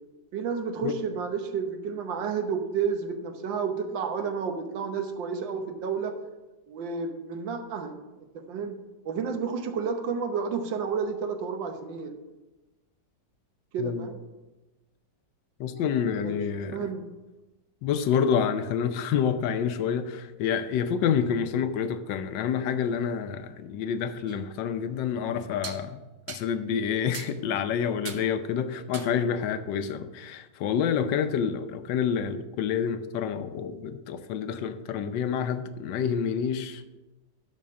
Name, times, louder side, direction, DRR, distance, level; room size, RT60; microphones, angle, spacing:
voice 1, 0.3-6.2 6.7-8.0 8.3-8.8 9.0-12.1 13.7-14.2 15.6-16.4 16.7-17.1, right 6 dB, 85° right, 1.7 m, -31 dB
voice 2, 15.6-16.8 17.8-36.8, left 7 dB, 80° left, 1.3 m, -28 dB
sound 1, 24.3-24.4 25.6-25.9 26.3-26.5 27.1-27.4 28.0-28.3 28.9-29.2, right 7 dB, 60° right, 0.9 m, -40 dB
11.5 x 4.3 x 6.4 m
omnidirectional pair, 2.0 m